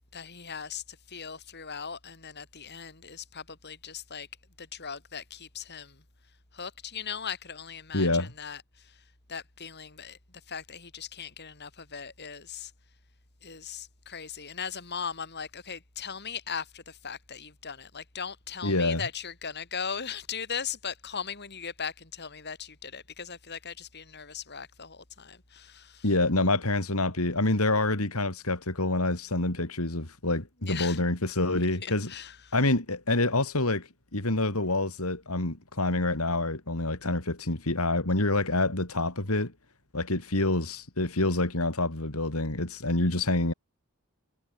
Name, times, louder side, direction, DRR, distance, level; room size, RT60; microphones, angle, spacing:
voice 1, 0.1-4.3 4.6-6.0 6.5-9.0 9.3-10.2 10.5-12.7 13.4-26.1 30.6-31.0 31.8-32.5, left 7 dB, 50° left, 4.2 m, -39 dB
voice 2, 7.9-8.3 18.6-19.0 26.0-32.1 32.5-39.5 39.9-43.5, left 2 dB, 75° left, 3.8 m, -27 dB
head